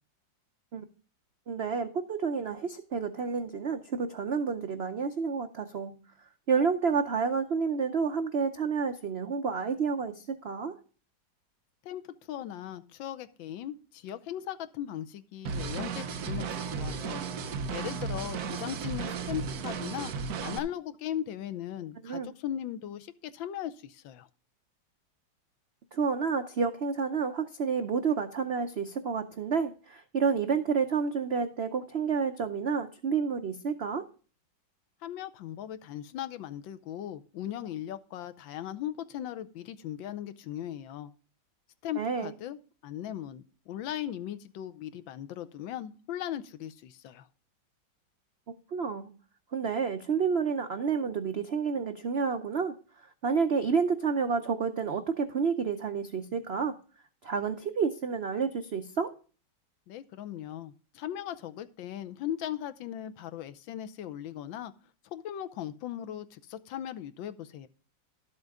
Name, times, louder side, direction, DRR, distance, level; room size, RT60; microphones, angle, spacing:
voice 1, 1.5-5.9 6.5-10.7 22.0-22.3 25.9-34.0 42.0-42.3 48.7-49.1 49.5-52.8 53.2-56.8 57.2-59.1, right 5 dB, 85° right, 8 dB, 0.5 m, -29 dB
voice 2, 12.3-20.1 20.4-24.3 35.0-41.1 41.8-42.6 42.8-47.3 59.9-64.7 65.1-67.7, left 11 dB, 85° left, 11 dB, 1.5 m, -38 dB
sound 1, 15.4-20.6, right 5 dB, 60° right, 1.2 m, -34 dB
12.0 x 7.8 x 3.5 m, 0.39 s
omnidirectional pair, 2.1 m